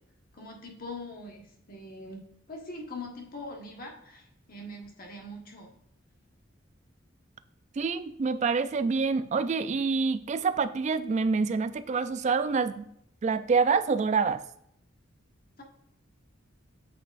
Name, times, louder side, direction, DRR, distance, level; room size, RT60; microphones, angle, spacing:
voice 1, 0.3-5.7 15.6-15.7, left 2 dB, 45° left, 0 dB, 1.4 m, -42 dB
voice 2, 7.8-12.9 13.2-14.4, right 5 dB, 35° right, 12 dB, 0.3 m, -26 dB
8.8 x 5.1 x 2.5 m, 0.73 s
head